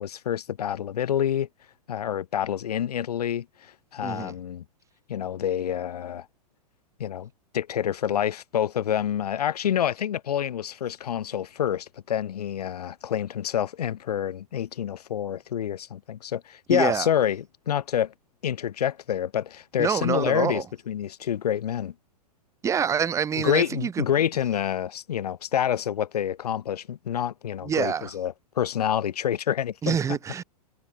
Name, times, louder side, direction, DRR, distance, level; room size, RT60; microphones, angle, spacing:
voice 1, 0.0-1.5 1.9-4.6 5.1-6.3 7.0-18.1 18.4-21.9 23.4-30.0, left 10 dB, 75° left, 0.9 m, -27 dB
voice 2, 4.0-4.4 16.7-17.1 19.8-20.6 22.6-24.1 27.6-28.1 29.8-30.4, right 7 dB, 15° right, 0.6 m, -26 dB
hypercardioid pair, 105°, 20 cm